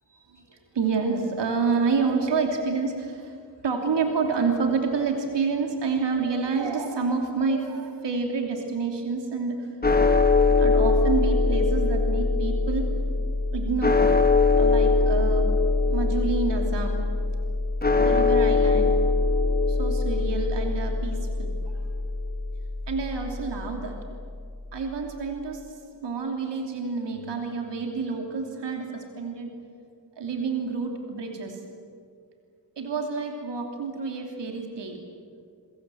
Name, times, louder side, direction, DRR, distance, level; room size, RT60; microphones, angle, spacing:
voice 1, 0.2-9.7 10.6-12.8 13.5-14.0 14.6-15.5 15.9-17.0 18.0-19.0 19.7-21.5 22.9-24.0 24.7-25.6 26.0-29.5 30.2-31.6 32.8-35.0, right 4 dB, 65° right, 3 dB, 3.1 m, -28 dB
sound 1, 9.8-24.1, left 3 dB, 20° left, 1.3 m, -22 dB
27.0 x 24.0 x 7.8 m, 2.3 s
wide cardioid pair, 165°, 46 cm